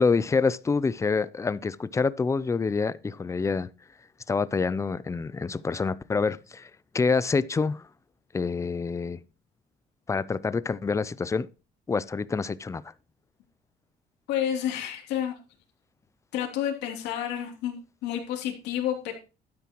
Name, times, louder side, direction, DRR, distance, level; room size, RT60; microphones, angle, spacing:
voice 1, 0.0-3.7 4.3-7.8 8.3-9.2 10.1-11.5 11.9-12.8, left 4 dB, 15° left, 0.5 m, -27 dB
voice 2, 14.3-15.4 16.3-19.1, left 10 dB, 90° left, 3.1 m, -30 dB
12.5 x 9.3 x 3.0 m
cardioid pair, 110°, 17 cm